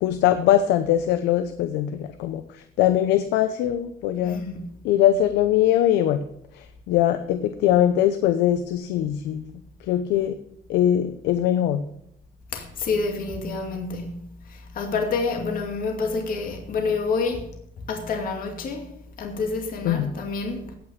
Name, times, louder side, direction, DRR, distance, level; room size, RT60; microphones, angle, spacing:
voice 1, 0.0-2.4 2.8-4.4 4.8-6.2 6.9-9.4 9.9-10.4 10.7-11.9 19.8-20.1, left 11 dB, 90° left, 0.8 m, -21 dB
voice 2, 4.2-4.7 12.5-17.4 17.9-18.9 19.2-20.7, left 4 dB, 55° left, 2.3 m, -28 dB
16.0 x 6.0 x 6.7 m
cardioid pair, 110°, 17 cm